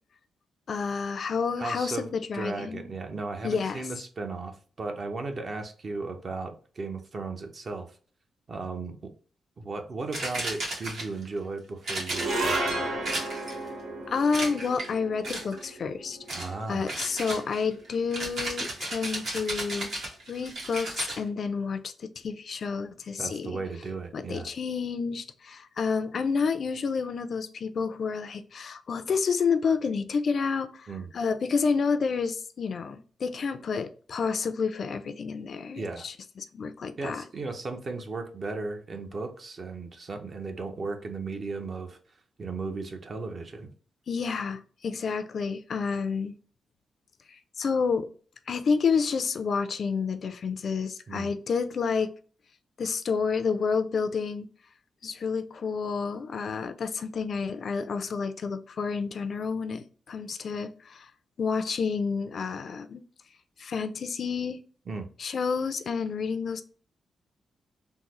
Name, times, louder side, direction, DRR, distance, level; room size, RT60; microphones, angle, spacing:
voice 1, 0.7-2.8 3.4-3.8 14.1-16.2 16.7-19.9 20.3-23.5 24.1-37.2 44.1-46.3 47.3-48.1 48.5-52.1 52.8-54.5 55.0-61.1 61.4-63.0 63.6-64.6 65.2-66.6, left 5 dB, 60° left, 0.4 m, -29 dB
voice 2, 1.6-2.1 2.3-8.0 8.5-9.1 9.6-13.0 16.3-17.0 23.2-24.5 30.9-31.1 35.7-36.1 37.0-42.0 42.4-43.7 51.1-51.3 64.9-65.1, right 3 dB, 45° right, 0.6 m, -36 dB
sound 1, 10.1-11.3 11.8-12.6 13.1-13.7 14.3-14.9 15.2-15.7 16.3-16.5 16.9-21.2, right 2 dB, 75° right, 1.4 m, -34 dB
sound 2, 12.1-18.6, right 2 dB, 90° right, 1.1 m, -34 dB
3.7 x 2.0 x 3.0 m
cardioid pair, 80°, 0 cm